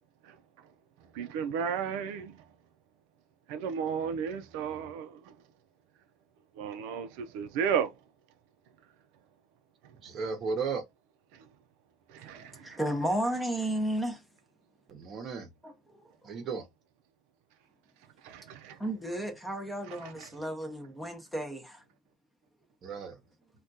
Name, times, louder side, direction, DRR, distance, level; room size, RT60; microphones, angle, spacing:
voice 1, 0.2-0.7 1.1-2.4 3.5-5.4 6.5-7.9 9.8-9.9 11.3-11.5 12.1-12.8 18.2-18.8 19.9-20.3, right 7 dB, 80° right, 0.4 m, -34 dB
voice 2, 10.0-10.8 14.9-15.5 16.2-16.7 22.8-23.2, right 5 dB, 35° right, 0.8 m, -34 dB
voice 3, 12.3-14.2 15.6-16.1 18.8-21.8, right 1 dB, 5° left, 0.6 m, -33 dB
3.5 x 2.3 x 2.6 m
cardioid pair, 160°, 0 cm